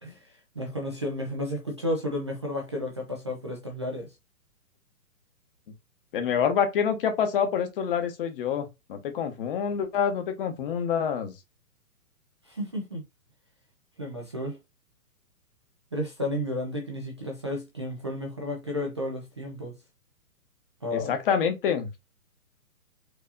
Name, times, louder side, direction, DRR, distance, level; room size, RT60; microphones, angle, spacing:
voice 1, 0.0-4.1 12.4-13.0 14.0-14.6 15.9-19.7 20.8-21.2, left 1 dB, 20° right, 0.4 m, -32 dB
voice 2, 6.1-11.3 20.9-22.0, left 7 dB, 35° left, 1.0 m, -27 dB
4.6 x 2.6 x 2.7 m
hypercardioid pair, 140°, 45 cm